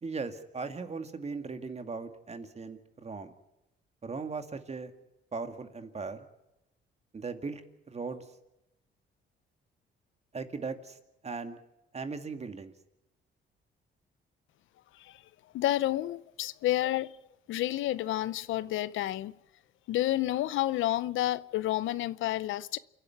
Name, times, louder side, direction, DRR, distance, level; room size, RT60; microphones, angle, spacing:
voice 1, 0.0-3.3 4.0-4.9 5.3-6.2 7.1-7.6 7.9-8.2 10.3-11.0 11.2-11.6 11.9-12.7, right 4 dB, 35° right, 2.3 m, -38 dB
voice 2, 15.5-17.1 17.5-19.3 19.9-22.8, left 14 dB, 80° left, 0.7 m, -30 dB
28.5 x 11.5 x 9.5 m
cardioid pair, 90°, 20 cm